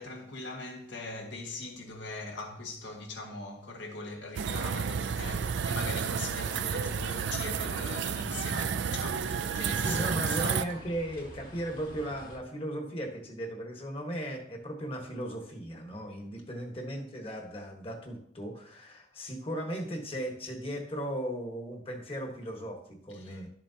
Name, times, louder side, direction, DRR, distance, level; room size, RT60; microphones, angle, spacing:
voice 1, 0.0-10.6 23.1-23.5, left 2 dB, 80° left, 1.8 m, -41 dB
sound 1, 4.3-10.6, right 6 dB, 75° right, 0.4 m, -31 dB
sound 2, 6.4-12.4, left 1 dB, 50° left, 2.0 m, -49 dB
voice 2, 9.6-23.5, equal, 30° left, 1.4 m, -37 dB
11.5 x 7.4 x 2.8 m
head